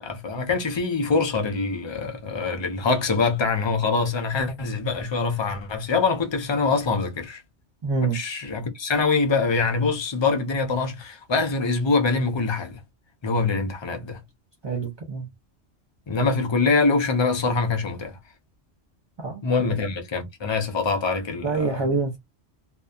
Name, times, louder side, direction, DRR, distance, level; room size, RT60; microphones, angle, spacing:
voice 1, 0.0-7.4 8.1-12.8 13.2-14.2 16.1-18.2 19.4-21.8, left 4 dB, 45° left, 0.3 m, -24 dB
voice 2, 7.8-8.2 14.6-15.3 19.2-19.8 21.4-22.2, right 4 dB, 40° right, 0.4 m, -26 dB
2.7 x 2.2 x 2.3 m
omnidirectional pair, 1.2 m